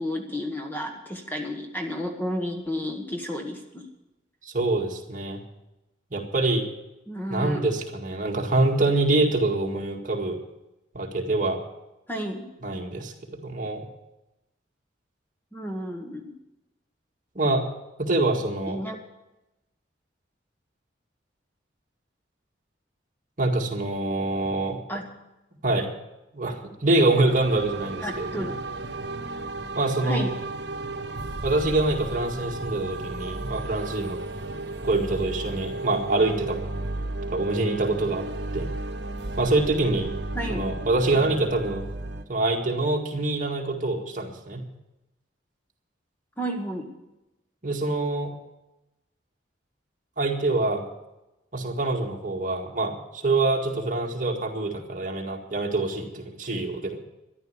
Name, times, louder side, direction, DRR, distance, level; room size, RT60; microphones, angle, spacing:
voice 1, 0.0-3.9 7.1-7.6 12.1-12.5 15.5-16.3 18.7-19.0 24.9-25.0 28.0-28.5 30.0-30.4 40.3-40.7 46.4-46.9, equal, 10° left, 3 dB, 1.2 m, -31 dB
voice 2, 4.4-5.4 6.1-6.7 7.3-10.4 10.9-11.6 12.6-13.9 17.4-17.6 18.0-18.8 23.4-24.8 25.6-25.9 26.3-28.5 29.8-30.3 31.4-34.2 34.8-36.6 37.3-38.2 38.5-38.7 39.4-40.1 40.5-41.8 42.3-44.6 47.6-48.3 50.2-50.8 51.5-57.0, right 2 dB, 45° right, 1 dB, 1.9 m, -25 dB
sound 1, 27.3-42.2, right 2 dB, 65° right, 1.2 m, -34 dB
13.5 x 11.0 x 7.0 m, 0.94 s
head